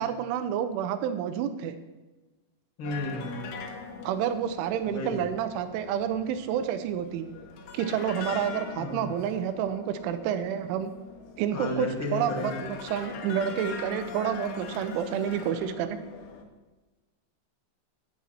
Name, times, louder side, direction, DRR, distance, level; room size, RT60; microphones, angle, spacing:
voice 1, 0.0-1.7 4.0-7.3 7.7-10.9 11.4-16.0, right 9 dB, 85° right, 10 dB, 3.1 m, -29 dB
sound 1, 2.8-16.4, left 5 dB, 70° left, 2.8 m, -42 dB
voice 2, 2.8-3.5 4.9-5.1 8.8-9.1 11.5-12.5, left 2 dB, 45° left, -2 dB, 1.7 m, -33 dB
14.5 x 7.2 x 5.8 m, 1.2 s
omnidirectional pair, 5.7 m